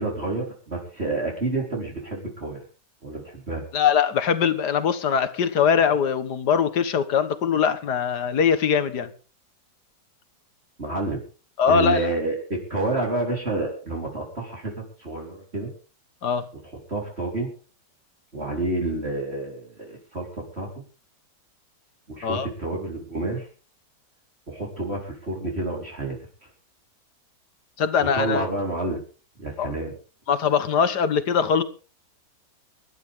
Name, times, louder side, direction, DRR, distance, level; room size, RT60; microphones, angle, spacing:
voice 1, 0.0-2.6 3.0-3.6 10.8-11.2 11.7-14.7 15.0-15.7 16.9-17.5 18.3-20.7 22.1-23.5 24.5-26.2 28.1-29.0 29.4-29.9, right 2 dB, 35° right, 4.4 m, -29 dB
voice 2, 3.7-9.1 11.6-12.2 16.2-16.5 22.2-22.5 27.8-28.5 29.6-29.7 30.3-31.6, left 7 dB, 70° left, 1.9 m, -22 dB
24.0 x 12.0 x 3.6 m
omnidirectional pair, 1.8 m